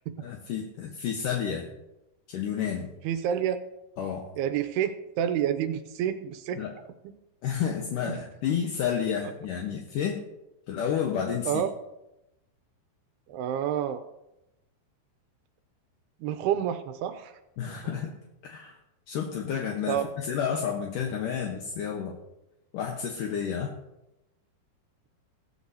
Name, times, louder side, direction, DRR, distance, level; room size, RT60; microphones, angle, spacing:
voice 1, 0.2-1.7 2.3-2.9 4.0-4.2 6.6-6.7 7.4-10.2 10.7-11.6 17.6-18.1 18.4-18.8 19.1-22.2 22.7-23.7, left 8 dB, 70° left, 0 dB, 2.2 m, -30 dB
voice 2, 3.0-3.6 4.4-6.6 8.1-8.2 11.5-11.7 13.3-14.0 16.2-17.3 19.9-20.1, right 10 dB, 80° right, 9 dB, 2.5 m, -28 dB
16.5 x 14.0 x 2.8 m, 0.92 s
omnidirectional pair, 5.1 m